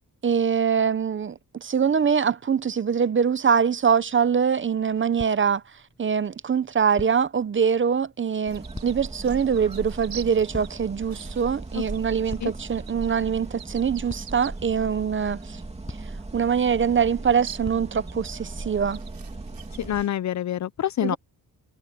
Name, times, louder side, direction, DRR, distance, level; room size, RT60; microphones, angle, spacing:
voice 1, 0.2-5.6 6.0-15.6 16.3-19.0 21.0-21.2, right 7 dB, 35° right, 0.7 m, -23 dB
sound 1, 4.0-18.5, left 2 dB, 15° left, 7.9 m, -47 dB
sound 2, 8.4-20.0, right 2 dB, 15° right, 2.7 m, -38 dB
sound 3, 8.5-20.2, right 9 dB, 70° right, 4.0 m, -47 dB
voice 2, 19.8-21.2, left 11 dB, 50° left, 0.5 m, -26 dB
wide cardioid pair, 130°, 36 cm